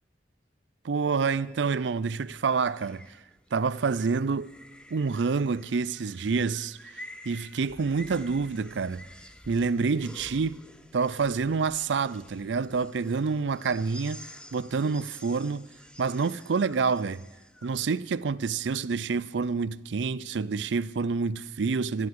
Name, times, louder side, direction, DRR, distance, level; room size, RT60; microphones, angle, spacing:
voice 1, 0.8-3.0 3.5-4.5 4.9-9.0 9.5-10.6 10.9-14.2 14.5-15.7 16.0-17.2 17.6-22.1, right 5 dB, 85° right, 0.5 m, -28 dB
sound 1, 0.9-17.9, left 1 dB, 5° left, 0.8 m, -50 dB
26.0 x 11.5 x 4.8 m
head